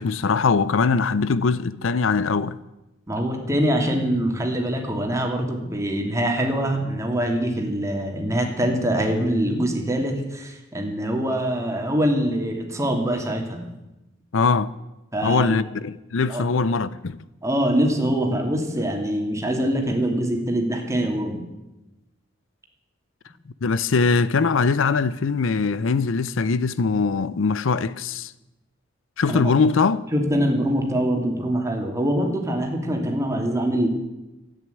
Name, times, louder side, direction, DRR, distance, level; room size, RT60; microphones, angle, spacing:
voice 1, 0.0-2.6 14.3-14.7 15.2-17.2 23.6-28.3 29.2-30.1, left 4 dB, 70° left, 0.5 m, -21 dB
voice 2, 3.1-13.6 15.1-15.6 16.3-16.4 17.4-21.4 29.3-29.4 30.1-33.9, right 1 dB, 15° right, 2.6 m, -24 dB
14.0 x 9.3 x 9.3 m
head